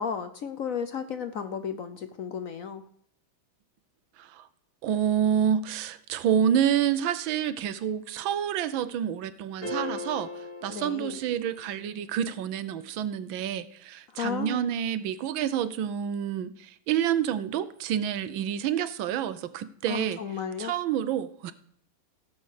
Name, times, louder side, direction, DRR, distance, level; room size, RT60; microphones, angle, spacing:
voice 1, 0.0-2.8 10.7-11.2 14.1-14.6 19.9-20.7, left 7 dB, 65° left, 10 dB, 0.8 m, -33 dB
voice 2, 4.8-10.3 10.6-20.2 20.6-21.5, right 9 dB, 75° right, 14 dB, 1.5 m, -28 dB
sound 1, 9.6-11.9, left 2 dB, 45° left, 3.9 m, -38 dB
16.5 x 6.1 x 6.6 m, 0.66 s
omnidirectional pair, 2.2 m